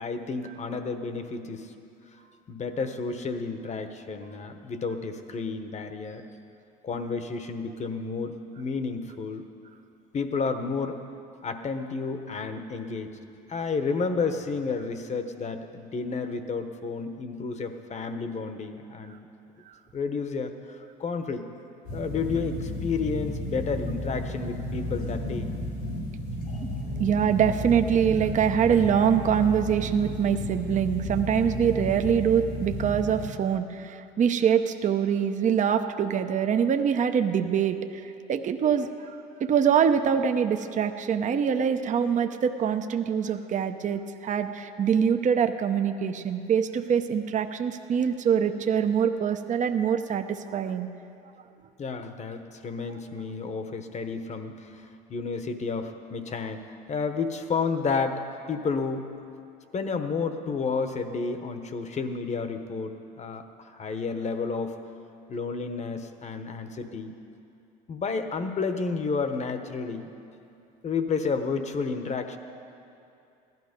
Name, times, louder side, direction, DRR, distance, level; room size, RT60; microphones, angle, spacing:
voice 1, 0.0-1.7 2.5-6.2 6.8-9.5 10.1-11.0 11.4-13.1 13.5-19.2 19.9-21.5 21.9-25.5 51.8-59.1 59.7-64.8 65.3-67.1 67.9-70.1 70.8-72.4, left 4 dB, 35° left, 8 dB, 1.1 m, -31 dB
sound 1, 21.8-33.3, left 1 dB, 85° left, 3.3 m, -33 dB
voice 2, 27.0-50.9, right 8 dB, 40° right, 7 dB, 0.8 m, -24 dB
16.0 x 12.5 x 5.2 m, 2.7 s
supercardioid pair, 85°, 20 cm